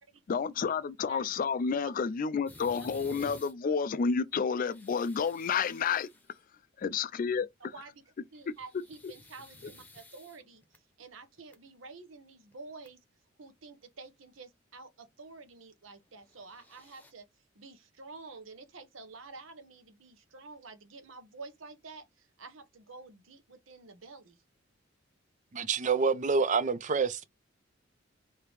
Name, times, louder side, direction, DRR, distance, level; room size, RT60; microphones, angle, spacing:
voice 1, 0.3-6.1 6.8-7.5, left 5 dB, 45° left, 0.3 m, -30 dB
sound 1, 2.5-3.5 4.4-6.4 8.4-10.8 11.4-11.5 12.5-12.6 12.8-12.9 16.2-17.1, left 1 dB, 10° left, 0.9 m, -53 dB
voice 2, 7.6-8.0 8.3-13.0 13.4-17.3 17.5-24.4, right 3 dB, 90° right, 1.0 m, -49 dB
voice 3, 25.5-27.2, right 5 dB, 40° right, 0.4 m, -27 dB
3.4 x 2.8 x 4.7 m
head